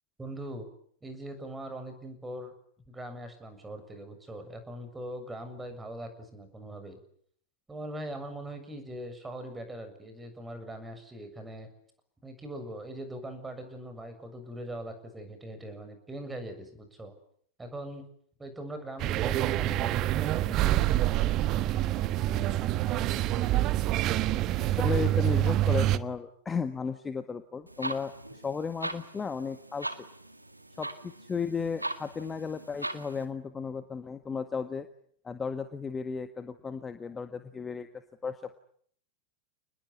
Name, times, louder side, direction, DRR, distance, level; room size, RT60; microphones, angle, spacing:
voice 1, 0.2-0.7 1.0-2.5 2.9-7.0 7.7-11.7 12.2-17.1 17.6-18.1 18.4-20.9, right 1 dB, 10° right, 8 dB, 7.2 m, -41 dB
sound 1, 19.0-26.0, right 14 dB, 35° right, 1.3 m, -26 dB
voice 2, 24.6-29.9 30.8-34.9 35.2-37.9 38.2-38.6, left 5 dB, 15° left, 9 dB, 1.7 m, -34 dB
sound 2, 27.7-33.2, right 1 dB, 85° right, 2.0 m, -40 dB
29.5 x 21.0 x 9.7 m, 0.64 s
figure-of-eight pair, 90°, 0 cm